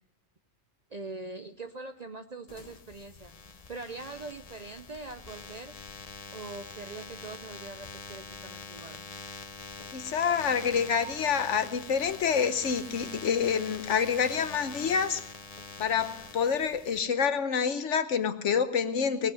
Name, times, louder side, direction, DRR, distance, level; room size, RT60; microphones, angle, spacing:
voice 1, 0.9-5.7 6.3-9.0 17.0-17.2, right 3 dB, 45° right, 8 dB, 0.6 m, -43 dB
sound 1, 2.5-17.0, left 4 dB, 35° left, 0.8 m, -44 dB
voice 2, 9.9-15.2 15.8-19.3, left 6 dB, 70° left, 11 dB, 1.2 m, -27 dB
19.5 x 8.0 x 7.8 m, 0.75 s
omnidirectional pair, 1.3 m